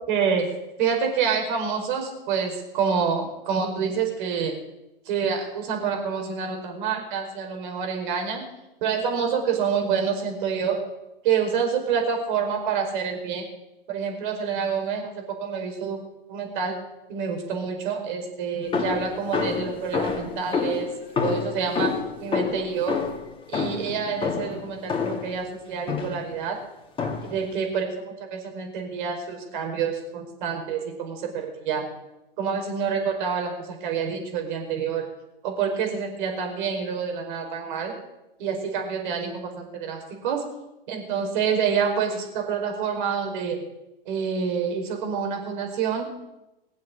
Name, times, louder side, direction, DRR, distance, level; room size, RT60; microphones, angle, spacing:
voice 1, 0.1-0.5 0.8-4.6 5.0-8.4 8.8-10.8 11.2-13.4 13.9-16.0 16.3-16.8 17.1-20.9 21.2-21.9 22.2-23.0 23.5-26.6 27.2-31.8 32.4-35.0 35.4-37.9 38.4-40.4 40.9-43.6 44.0-46.1, right 6 dB, 55° right, 2 dB, 5.1 m, -27 dB
sound 1, 18.7-25.4 25.9-26.3 27.0-27.5, left 5 dB, 20° left, 2.3 m, -28 dB
21.5 x 7.6 x 8.7 m, 0.94 s
hypercardioid pair, 110°, 29 cm